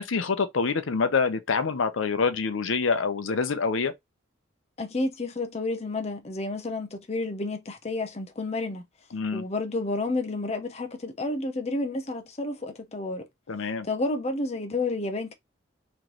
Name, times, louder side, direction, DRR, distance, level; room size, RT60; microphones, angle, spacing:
voice 1, 0.0-3.9 9.1-9.4 13.5-13.9, left 5 dB, 80° left, 0.6 m, -26 dB
voice 2, 4.8-8.8 9.3-13.3 13.8-15.3, left 2 dB, 30° left, 0.5 m, -30 dB
3.2 x 3.0 x 3.7 m
head